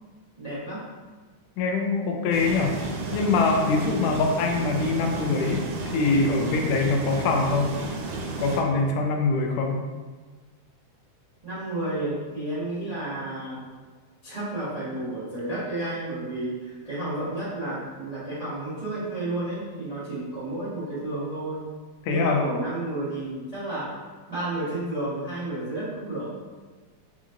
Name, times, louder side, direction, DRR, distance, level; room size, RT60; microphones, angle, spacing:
voice 1, 0.4-0.9 11.4-13.7 14.2-21.7 22.1-23.9 24.3-26.3, right 2 dB, 75° right, -12 dB, 0.3 m, -31 dB
voice 2, 1.6-2.8 3.1-7.8 8.4-9.8 22.1-22.4, left 3 dB, 85° left, 2 dB, 2.1 m, -24 dB
sound 1, 2.3-8.6, right 3 dB, 90° right, 2.1 m, -32 dB
5.0 x 4.1 x 2.5 m, 1.4 s
omnidirectional pair, 3.6 m